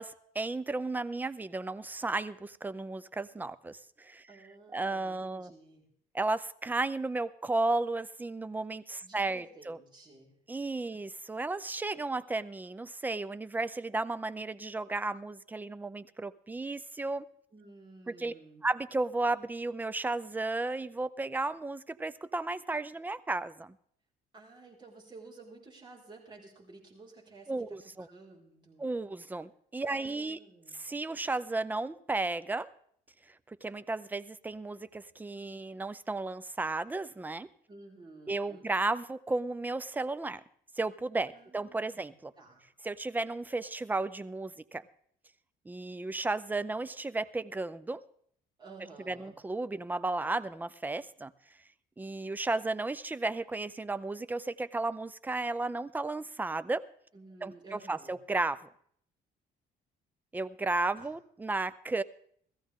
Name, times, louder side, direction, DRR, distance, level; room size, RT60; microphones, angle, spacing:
voice 1, 0.0-4.3 4.7-5.5 6.1-9.8 10.5-17.3 18.1-18.3 18.6-23.7 27.5-28.1 28.8-30.4 30.7-32.7 33.5-37.5 38.3-40.4 40.8-42.3 42.8-44.8 45.7-48.0 49.1-51.3 52.0-56.8 57.4-58.6 60.3-62.0, right 2 dB, 10° right, 16 dB, 0.5 m, -34 dB
voice 2, 4.3-5.8 9.0-10.3 10.7-10.8 17.5-18.7 24.3-27.8 28.1-28.9 29.8-30.9 37.7-38.7 41.3-42.6 48.6-49.3 57.1-58.2 61.0-61.1, right 3 dB, 25° right, -2 dB, 4.6 m, -53 dB
16.5 x 14.5 x 3.7 m, 0.64 s
cardioid pair, 110°, 17 cm